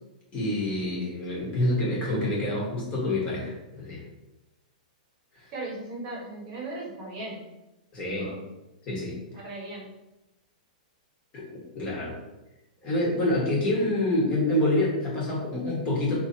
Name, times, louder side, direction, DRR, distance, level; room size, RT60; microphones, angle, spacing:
voice 1, 0.3-4.0 5.3-5.5 7.9-8.3 8.9-9.1 11.3-12.2 12.8-16.1, left 1 dB, 25° left, -5 dB, 1.3 m, -27 dB
voice 2, 5.5-7.4 8.1-8.4 9.3-9.9, right 2 dB, 35° right, -2 dB, 1.1 m, -37 dB
3.0 x 2.7 x 3.9 m, 0.98 s
hypercardioid pair, 150°, 5 cm